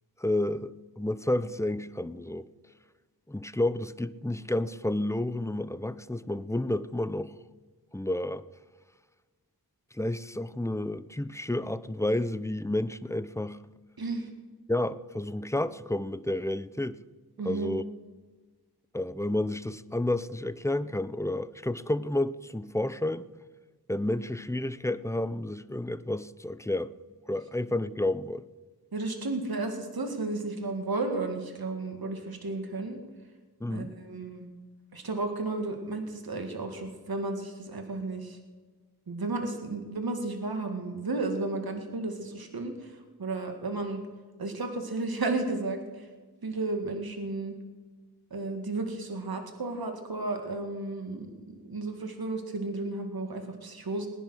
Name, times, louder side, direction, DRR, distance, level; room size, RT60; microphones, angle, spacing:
voice 1, 0.2-2.5 3.3-7.3 7.9-8.5 9.9-13.6 14.7-17.0 17.4-17.8 18.9-23.3 23.9-26.9 27.3-28.4 33.6-34.0, left 1 dB, 5° left, 0.6 m, -30 dB
voice 2, 14.0-14.3 17.4-17.8 28.9-33.0 33.7-34.5 34.9-38.4 39.1-42.9 43.2-44.0 44.4-46.1 46.4-47.6 48.3-54.1, right 2 dB, 65° right, 2.1 m, -33 dB
20.0 x 10.5 x 6.4 m
wide cardioid pair, 55°, 40 cm